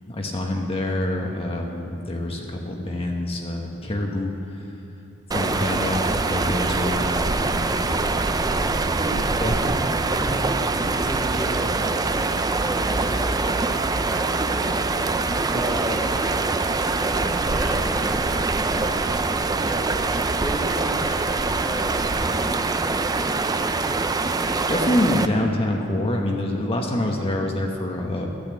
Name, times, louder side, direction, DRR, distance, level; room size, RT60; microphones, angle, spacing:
voice 1, 0.1-4.6 5.3-7.8 9.4-9.6 24.7-28.3, left 1 dB, 30° left, 1 dB, 1.0 m, -26 dB
sound 1, 5.3-25.3, right 3 dB, 20° right, 0.4 m, -24 dB
voice 2, 7.7-14.8 15.5-16.1 17.0-18.9 19.6-20.1 20.4-23.0, right 1 dB, 5° right, 0 dB, 1.2 m, -35 dB
12.5 x 8.2 x 8.3 m, 2.6 s
head